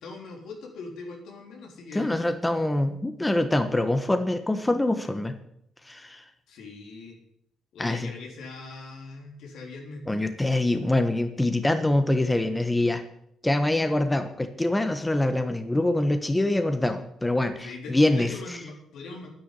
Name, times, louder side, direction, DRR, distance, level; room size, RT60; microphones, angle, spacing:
voice 1, 0.0-2.1 6.5-7.2 7.7-10.0 17.6-19.3, left 3 dB, 80° left, 1 dB, 3.9 m, -41 dB
voice 2, 1.9-5.3 5.8-6.2 7.8-8.1 10.1-13.0 13.4-18.3, left 1 dB, 15° left, 8 dB, 1.3 m, -24 dB
10.0 x 10.0 x 8.4 m, 0.72 s
cardioid pair, 90°, 0 cm